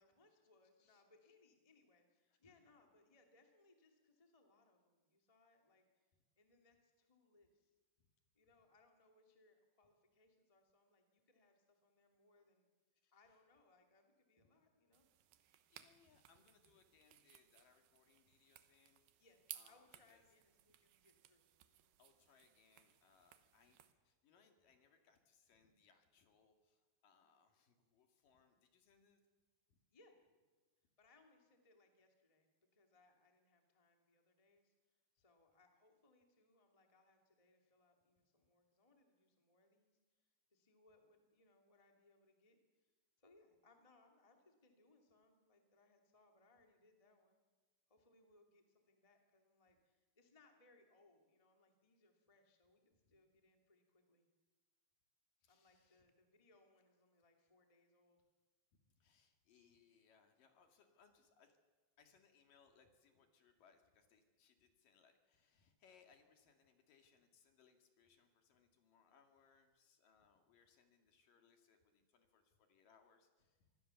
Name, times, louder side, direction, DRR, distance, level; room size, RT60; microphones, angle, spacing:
voice 1, 0.0-6.1 6.3-7.7 8.3-12.7 13.1-15.1 19.2-19.4 19.6-21.9 29.9-30.1 31.0-32.5 32.7-34.7 35.1-40.0 40.5-42.9 43.2-47.5 47.9-52.8 53.1-54.3 55.5-58.2, left 2 dB, 15° left, 3 dB, 1.4 m, -72 dB
voice 2, 2.3-2.6 8.0-8.1 13.0-13.4 14.4-14.5 15.5-19.3 19.5-20.2 22.0-23.8 24.0-29.2 29.7-29.8 53.0-53.2 55.4-56.0 58.7-61.6 62.0-73.7, left 6 dB, 60° left, 5 dB, 3.3 m, -72 dB
sound 1, 14.9-23.9, right 13 dB, 70° right, 2.7 m, -61 dB
25.0 x 20.0 x 7.0 m, 1.3 s
omnidirectional pair, 4.9 m